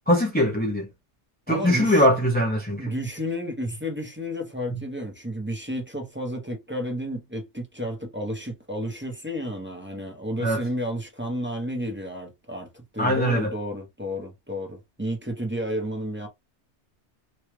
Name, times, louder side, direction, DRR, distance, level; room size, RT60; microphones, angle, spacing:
voice 1, 0.1-0.9 1.5-2.9 4.7-4.8 10.4-10.6 13.0-13.5, equal, 10° left, 0.5 m, -22 dB
voice 2, 1.5-2.1 2.8-16.3, equal, 10° right, 0.8 m, -32 dB
3.1 x 2.4 x 3.1 m
omnidirectional pair, 1.2 m